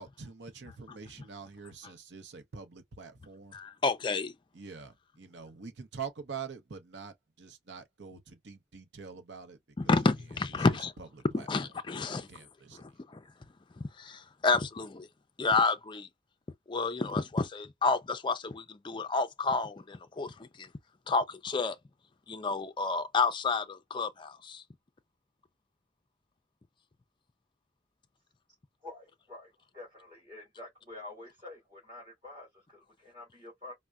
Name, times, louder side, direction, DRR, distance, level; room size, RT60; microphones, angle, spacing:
voice 1, 0.0-3.6 4.5-9.6 9.8-9.9 10.6-11.1 11.4-11.5 12.0-12.8, right 6 dB, 70° right, 0.7 m, -45 dB
voice 2, 3.5-4.3 9.8-10.9 11.3-12.3 12.7-13.2 14.0-15.1 15.4-16.1 16.7-20.7 21.1-21.8 22.3-24.6, left 4 dB, 25° left, 0.4 m, -30 dB
voice 3, 28.8-33.7, left 2 dB, 25° right, 2.3 m, -48 dB
4.3 x 2.1 x 2.3 m
head